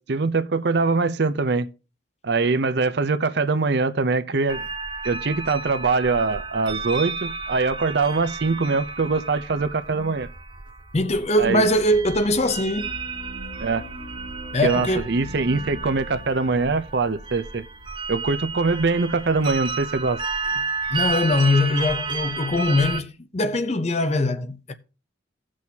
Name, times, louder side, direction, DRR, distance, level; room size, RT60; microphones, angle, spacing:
voice 1, 0.0-1.7 2.2-4.7 5.0-10.3 11.4-11.6 13.6-13.8 14.6-17.6 18.1-20.2, right 3 dB, 60° right, 0.6 m, -23 dB
sound 1, 4.5-23.0, right 4 dB, 25° right, 0.7 m, -32 dB
voice 2, 10.9-12.9 14.5-15.1 20.9-24.7, left 1 dB, 35° left, 0.7 m, -22 dB
sound 2, 11.4-18.5, left 1 dB, 70° left, 3.7 m, -42 dB
17.0 x 6.3 x 2.8 m
head